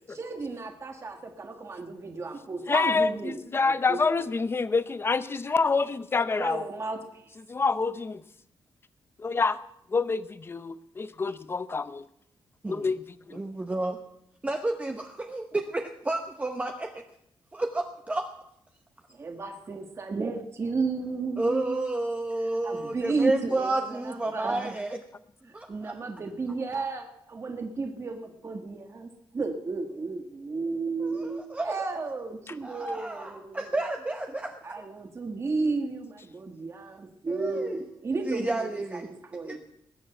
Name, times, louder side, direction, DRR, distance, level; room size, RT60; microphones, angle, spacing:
voice 1, 0.1-4.3 6.3-7.3 19.1-21.8 22.6-24.7 25.7-33.7 34.6-39.6, right 3 dB, 30° right, 4 dB, 1.4 m, -33 dB
voice 2, 2.7-6.6 7.5-8.2 9.2-9.6 9.9-12.1 12.7-13.4, left 4 dB, 25° left, 14 dB, 0.7 m, -27 dB
voice 3, 13.3-14.0 14.4-17.0 17.5-18.3 21.4-25.0 25.4-25.9 31.0-31.9 32.6-34.6 37.3-37.7 38.3-39.1 39.4-39.6, right 2 dB, 15° right, 4 dB, 1.0 m, -31 dB
20.0 x 7.4 x 7.7 m, 0.76 s
wide cardioid pair, 145°, 9 cm